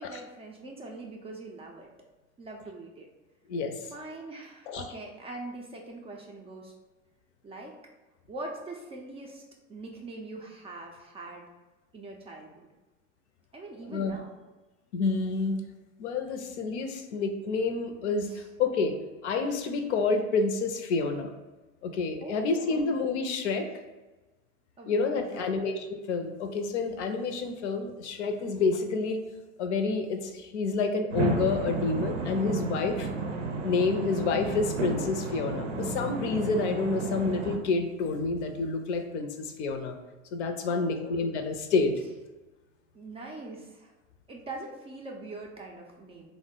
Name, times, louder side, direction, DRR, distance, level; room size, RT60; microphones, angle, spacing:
voice 1, 0.0-1.9 2.4-3.1 3.8-6.7 7.4-7.8 8.3-9.4 9.7-11.5 11.9-12.7 13.5-14.4 18.2-18.5 22.2-22.9 24.8-25.7 40.6-41.2 41.9-42.1 42.9-43.9 44.3-46.3, right 2 dB, 15° right, 0 dB, 0.4 m, -43 dB
voice 2, 13.8-14.2 14.9-15.6 16.0-19.0 19.2-21.3 21.8-23.7 24.9-29.2 29.6-33.1 33.6-39.9 40.3-41.9, left 4 dB, 65° left, 6 dB, 0.5 m, -29 dB
sound 1, 31.1-37.6, right 2 dB, 75° right, 0.6 m, -32 dB
3.3 x 2.0 x 3.7 m, 1.1 s
figure-of-eight pair, 75°, 37 cm